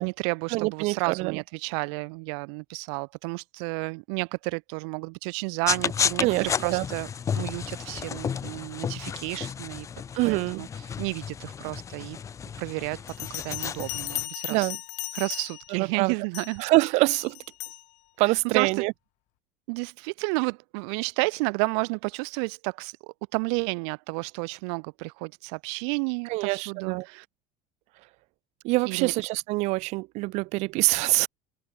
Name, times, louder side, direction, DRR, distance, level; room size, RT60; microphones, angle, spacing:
voice 1, 0.0-7.1 7.4-9.9 10.2-10.7 11.0-12.2 12.6-14.7 15.1-16.6 18.2-18.8 19.7-23.0 23.3-27.2 28.9-29.1, right 37 dB, 75° right, 2.0 m, -31 dB
voice 2, 0.5-1.4 6.2-6.8 10.1-10.6 14.5-14.8 15.7-16.1 16.6-17.4 18.2-18.9 26.3-27.1 28.6-31.3, right 23 dB, 50° right, 0.5 m, -25 dB
sound 1, 5.7-14.3, left 7 dB, 20° left, 1.6 m, -32 dB
Bell, 13.1-15.8 16.3-16.6 17.1-17.8, left 21 dB, 55° left, 2.8 m, -36 dB
cardioid pair, 165°, 14 cm